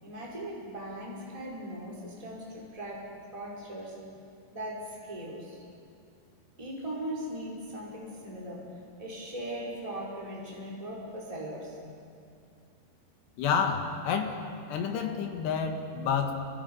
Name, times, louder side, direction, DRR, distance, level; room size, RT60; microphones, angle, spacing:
voice 1, 0.0-4.0 4.5-5.6 6.6-8.7 9.0-11.8, right 1 dB, 5° right, -5 dB, 4.7 m, -39 dB
voice 2, 13.4-14.4 14.7-16.3, left 6 dB, 65° left, 4 dB, 3.6 m, -29 dB
30.0 x 27.0 x 5.6 m, 2.5 s
omnidirectional pair, 5.7 m